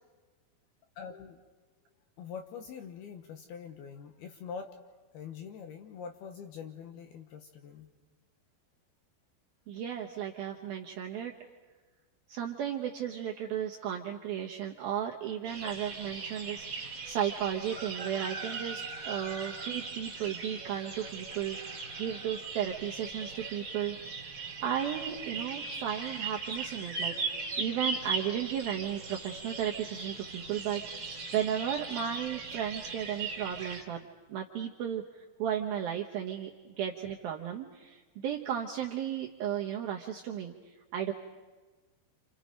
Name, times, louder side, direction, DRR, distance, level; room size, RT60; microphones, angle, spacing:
voice 1, 1.0-1.4 2.2-4.7 5.1-7.9, left 6 dB, 70° left, 5 dB, 2.5 m, -44 dB
voice 2, 9.7-11.3 12.3-24.3 24.6-34.0 34.3-41.1, right 9 dB, 75° right, 0 dB, 2.2 m, -35 dB
sound 1, 15.4-33.8, right 4 dB, 30° right, 2.6 m, -39 dB
29.0 x 28.5 x 5.2 m, 1.3 s
omnidirectional pair, 5.7 m